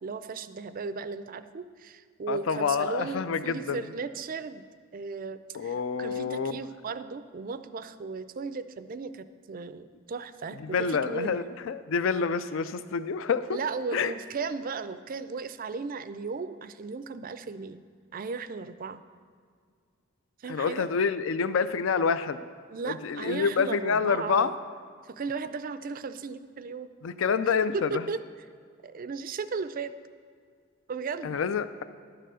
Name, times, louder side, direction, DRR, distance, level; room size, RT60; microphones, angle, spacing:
voice 1, 0.0-4.6 4.9-11.4 13.5-17.8 18.1-19.0 20.4-20.9 22.7-24.6 25.0-26.9 27.7-28.2 28.8-29.9 30.9-31.4, right 4 dB, 40° right, 13 dB, 0.4 m, -36 dB
voice 2, 2.3-3.8 5.5-6.6 10.6-13.6 13.9-14.1 20.4-22.4 22.8-24.5 27.0-28.0 31.2-31.8, left 5 dB, 65° left, 13 dB, 0.4 m, -27 dB
11.5 x 6.8 x 6.2 m, 2.1 s
head